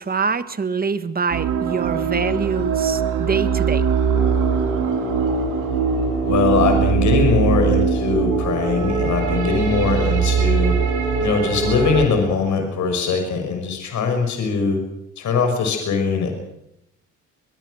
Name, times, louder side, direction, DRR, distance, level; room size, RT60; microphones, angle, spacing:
voice 1, 0.0-3.9, right 5 dB, 30° right, 12 dB, 1.6 m, -25 dB
sound 1, 1.3-12.1, right 6 dB, 85° right, 4.1 m, -21 dB
Wind instrument woodwind instrument, 4.1-12.7, left 2 dB, 20° left, 3.6 m, -33 dB
voice 2, 6.2-10.8 11.2-14.8 15.2-16.3, left 5 dB, 70° left, 5 dB, 5.7 m, -21 dB
23.0 x 22.5 x 6.5 m, 0.81 s
cardioid pair, 90°, 30 cm